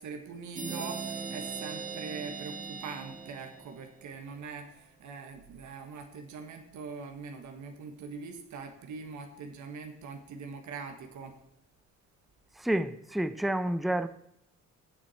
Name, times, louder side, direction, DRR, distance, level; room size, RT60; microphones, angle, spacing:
voice 1, 0.0-11.4, right 5 dB, 70° right, 1.5 m, -42 dB
sound 1, 0.6-4.1, right 5 dB, 25° right, 1.6 m, -39 dB
voice 2, 12.6-14.1, right 1 dB, ahead, 0.5 m, -29 dB
16.0 x 6.4 x 4.3 m
cardioid pair, 90°, 30 cm